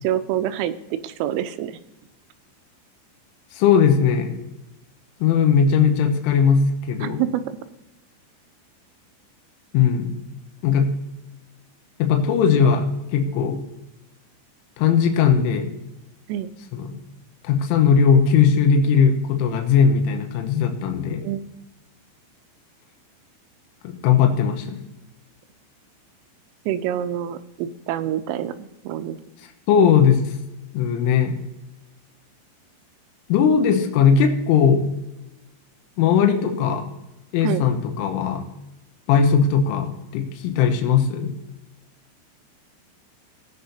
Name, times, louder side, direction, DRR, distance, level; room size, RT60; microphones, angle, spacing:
voice 1, 0.0-1.8 7.0-7.6 16.3-16.5 21.2-21.4 26.7-29.2 37.4-37.7, right 11 dB, 90° right, 10 dB, 3.2 m, -27 dB
voice 2, 3.5-4.4 5.2-7.2 9.7-10.1 10.6-10.9 12.0-12.9 13.1-13.6 14.8-15.7 16.7-16.9 17.4-21.2 23.8-24.8 29.7-30.3 30.7-31.4 33.3-34.8 36.0-36.8 37.3-38.4 39.1-41.3, left 7 dB, 80° left, 4 dB, 3.4 m, -18 dB
20.0 x 7.9 x 2.7 m, 0.96 s
omnidirectional pair, 5.7 m